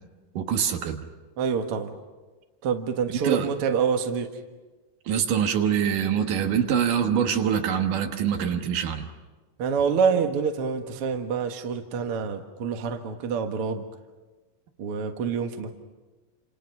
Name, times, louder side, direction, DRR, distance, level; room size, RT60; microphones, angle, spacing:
voice 1, 0.4-1.0 3.1-3.5 5.1-9.1, right 8 dB, 75° right, 5 dB, 3.0 m, -24 dB
voice 2, 1.4-2.0 2.6-4.3 9.6-13.8 14.8-15.7, right 6 dB, 50° right, 5 dB, 2.2 m, -26 dB
29.0 x 27.0 x 6.0 m, 1.3 s
omnidirectional pair, 3.8 m